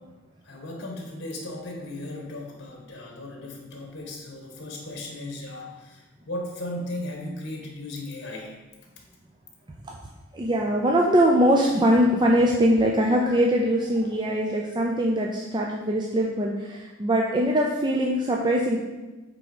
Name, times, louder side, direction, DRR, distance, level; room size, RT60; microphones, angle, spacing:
voice 1, 0.4-8.6, left 1 dB, 60° left, 0 dB, 1.6 m, -36 dB
voice 2, 10.3-18.8, equal, 25° right, -2 dB, 0.5 m, -22 dB
8.0 x 3.7 x 5.0 m, 1.2 s
head